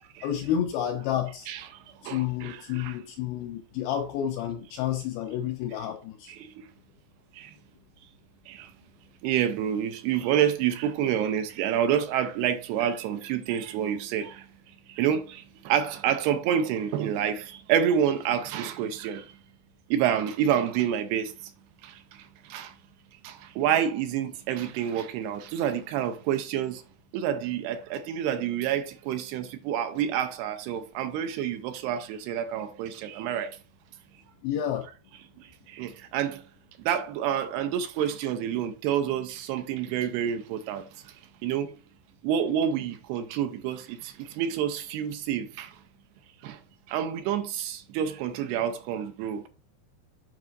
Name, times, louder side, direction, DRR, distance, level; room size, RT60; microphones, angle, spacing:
voice 1, 0.2-1.5 2.0-6.3 34.4-34.9, left 10 dB, 85° left, 2.2 m, -30 dB
voice 2, 1.5-3.0 6.3-6.7 7.3-7.6 8.5-8.7 9.2-14.5 14.9-19.4 19.9-21.5 21.8-22.8 23.2-26.8 27.1-33.6 35.4-36.4 36.8-41.7 42.2-45.8 46.4-46.6 46.9-49.5, right 9 dB, 85° right, 2.6 m, -28 dB
11.0 x 4.8 x 2.5 m
omnidirectional pair, 4.9 m